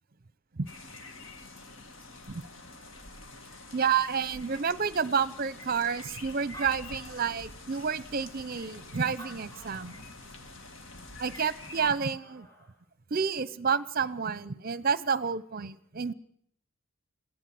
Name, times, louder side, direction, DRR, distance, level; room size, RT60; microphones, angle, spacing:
sound 1, 0.7-11.9, left 2 dB, 65° left, 2.2 m, -47 dB
voice 1, 3.7-10.0 11.2-12.5 13.1-16.1, right 6 dB, 45° right, 18 dB, 0.7 m, -30 dB
Animal, 6.5-7.8 8.4-8.5 9.1-10.1 11.5-11.6 11.8-12.7, right 1 dB, 15° left, 4.9 m, -49 dB
21.5 x 16.0 x 7.7 m, 0.67 s
head